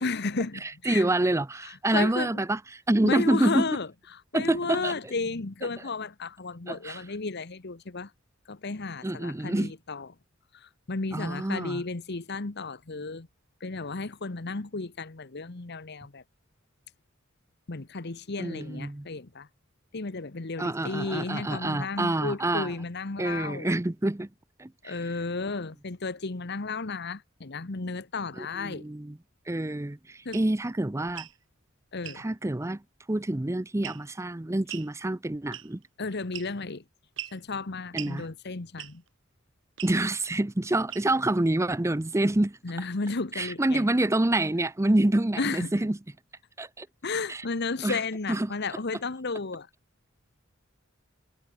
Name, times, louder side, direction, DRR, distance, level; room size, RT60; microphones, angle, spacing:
voice 1, 0.0-1.1 1.9-2.3 3.0-8.1 8.5-10.1 10.5-13.3 13.6-16.2 17.7-19.5 19.9-23.7 24.8-28.9 30.2-30.4 31.9-32.3 36.0-36.8 37.3-39.0 42.6-43.9 45.4-45.7 47.0-49.7, left 3 dB, 55° left, 1.1 m, -33 dB
voice 2, 0.9-3.7 4.3-4.9 6.7-7.0 9.0-9.7 11.1-11.8 18.4-19.1 20.6-22.7 23.2-24.3 24.6-24.9 28.4-29.2 29.5-31.3 32.2-32.8 33.1-35.8 37.9-38.3 39.8-42.6 43.4-46.0 46.6-46.9 47.3-47.4 47.8-48.0 48.3-48.5, right 1 dB, 15° right, 0.6 m, -27 dB
sound 1, 30.3-30.5 31.1-31.4 32.0-32.2 33.8-34.2 34.7-34.9 35.5-35.9 36.3-36.7 37.2-37.4 38.0-38.2 38.8-39.1 39.8-40.0 40.9-41.3, right 12 dB, 65° right, 5.4 m, -40 dB
head